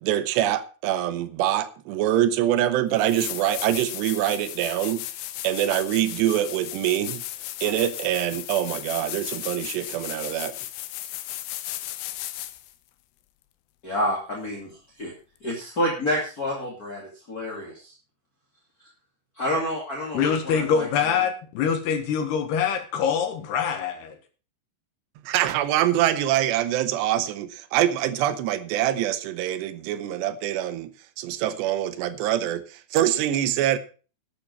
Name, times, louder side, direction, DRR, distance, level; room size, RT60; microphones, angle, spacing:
voice 1, 0.0-5.0 5.4-7.2 7.6-10.5 25.3-30.9 31.2-33.8, right 12 dB, 75° right, 2.7 m, -24 dB
sound 1, 2.5-2.6 3.0-12.7 15.5-15.6, left 15 dB, 85° left, 3.5 m, -35 dB
voice 2, 13.8-14.7 15.0-15.1 15.4-17.9 19.3-20.9 21.1-21.2, equal, 30° left, 1.6 m, -28 dB
voice 3, 20.1-24.2, left 7 dB, 65° left, 3.0 m, -24 dB
12.0 x 8.9 x 5.3 m
omnidirectional pair, 5.8 m